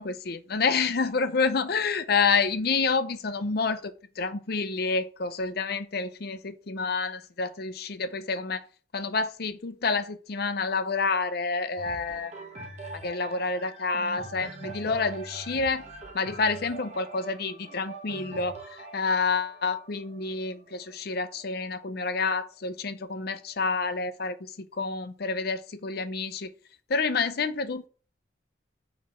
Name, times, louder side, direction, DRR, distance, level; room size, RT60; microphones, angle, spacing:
voice 1, 0.0-8.7 8.9-12.3 12.9-15.8 16.1-18.6 18.9-24.4 24.7-26.5 26.9-27.9, left 4 dB, 55° left, 0.6 m, -28 dB
sound 1, 11.8-21.6 22.2-22.3, right 3 dB, 35° right, 1.2 m, -43 dB
4.8 x 4.2 x 5.7 m
head